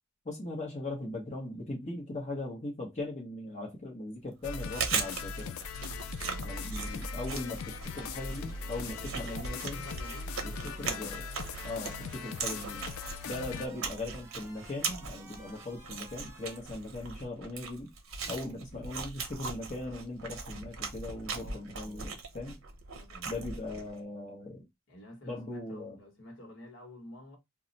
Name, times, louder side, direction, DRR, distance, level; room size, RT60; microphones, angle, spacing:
voice 1, 0.2-5.6 6.4-9.8 10.4-10.5 10.8-11.2 11.6-12.9 13.2-17.9 18.3-22.6 23.2-24.7 25.3-26.0, left 2 dB, 35° left, 0.8 m, -39 dB
sound 1, 4.4-13.7, left 4 dB, 85° left, 0.3 m, -40 dB
Chewing mastication, 4.4-24.0, right 5 dB, 80° right, 0.7 m, -39 dB
voice 2, 6.2-6.5 8.8-11.2 21.3-22.1 22.9-23.8 24.9-27.4, left 1 dB, 60° left, 1.1 m, -50 dB
sound 2, 6.6-16.6, right 2 dB, 15° right, 0.6 m, -54 dB
2.3 x 2.1 x 3.8 m
head